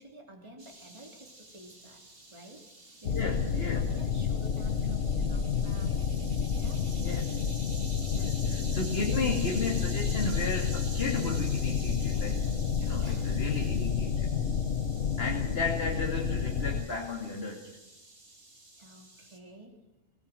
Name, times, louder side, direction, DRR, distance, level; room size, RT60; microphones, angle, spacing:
voice 1, 0.0-2.0 2.3-2.7 3.0-6.0 6.5-6.9 8.1-8.9 13.0-13.3 18.8-19.8, right 1 dB, 25° right, 2 dB, 3.0 m, -50 dB
sound 1, 0.6-19.4, right 2 dB, 50° right, 3.2 m, -48 dB
sound 2, 3.0-16.8, left 7 dB, 85° left, 1.4 m, -30 dB
voice 2, 3.1-4.1 7.0-7.3 7.7-12.4 12.8-14.3 15.2-17.7, left 3 dB, 55° left, 0 dB, 2.8 m, -34 dB
22.5 x 19.0 x 7.6 m, 1.0 s
omnidirectional pair, 1.2 m